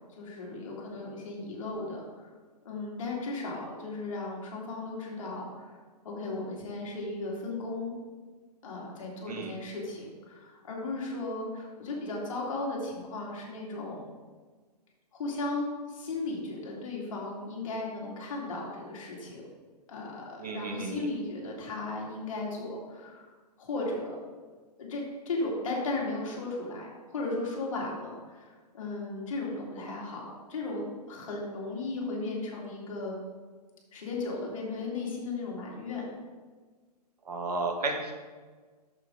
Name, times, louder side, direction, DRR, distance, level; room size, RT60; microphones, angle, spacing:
voice 1, 0.2-2.3 2.6-5.7 6.0-8.0 8.6-14.1 15.1-19.4 19.9-23.3 23.6-24.2 24.8-30.2 30.5-33.2 33.9-36.1, left 2 dB, 50° left, -3 dB, 2.5 m, -36 dB
voice 2, 20.4-21.1 37.2-38.1, right 3 dB, 65° right, 3 dB, 1.6 m, -33 dB
8.6 x 7.1 x 3.8 m, 1.4 s
hypercardioid pair, 175°, 21 cm